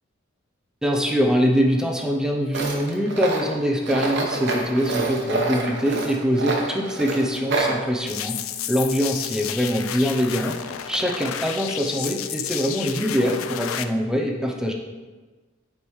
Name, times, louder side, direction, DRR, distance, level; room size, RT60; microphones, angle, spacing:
voice 1, 0.8-8.4 8.7-10.6 10.9-14.7, equal, 5° right, 0 dB, 0.5 m, -23 dB
Tools, 2.5-7.8, right 3 dB, 60° right, 0.9 m, -27 dB
sound 1, 8.1-13.8, left 10 dB, 85° left, 0.4 m, -32 dB
8.5 x 4.8 x 3.1 m, 1.3 s
head